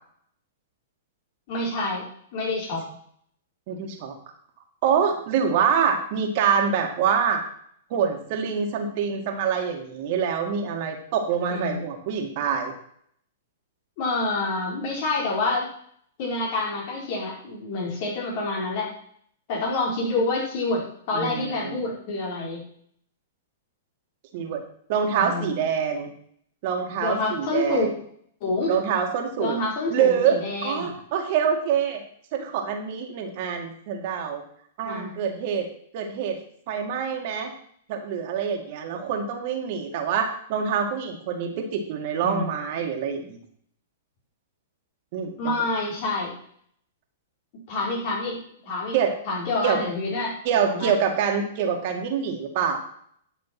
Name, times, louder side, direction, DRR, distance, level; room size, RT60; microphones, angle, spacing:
voice 1, 1.5-2.0 2.3-2.9 11.5-11.8 14.0-15.7 16.2-18.9 19.5-22.6 25.2-25.6 27.0-27.9 28.4-28.8 29.4-30.9 34.8-35.1 42.2-42.5 45.4-46.3 47.7-48.4 48.6-49.0 49.3-50.3 50.6-50.9, left 2 dB, 50° left, -2 dB, 5.0 m, -27 dB
voice 2, 3.7-4.1 4.8-7.4 7.9-12.7 21.1-21.8 24.3-24.6 24.9-26.1 26.6-27.9 28.7-29.6 29.9-32.0 32.3-34.4 34.8-35.7 35.9-36.4 36.7-37.5 37.9-43.4 45.1-45.5 48.9-49.1 49.6-49.8 50.5-52.8, right 7 dB, 50° right, 4 dB, 2.1 m, -25 dB
11.0 x 6.1 x 6.0 m, 0.64 s
hypercardioid pair, 120°, 0 cm